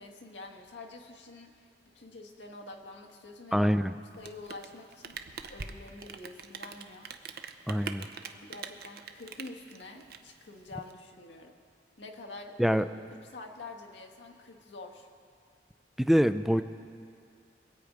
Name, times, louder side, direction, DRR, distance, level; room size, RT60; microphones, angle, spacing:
voice 1, 0.0-1.7 1.9-3.7 4.2-5.1 5.5-7.1 7.7-7.9 8.3-11.5 12.0-12.8 13.3-15.1, left 2 dB, 90° left, 1 dB, 1.4 m, -46 dB
voice 2, 3.5-3.9 7.7-8.1 12.6-12.8 16.0-16.6, equal, ahead, 11 dB, 0.3 m, -24 dB
Rain, 4.1-10.9, right 6 dB, 60° right, 0.7 m, -43 dB
23.0 x 8.6 x 5.0 m, 2.3 s
head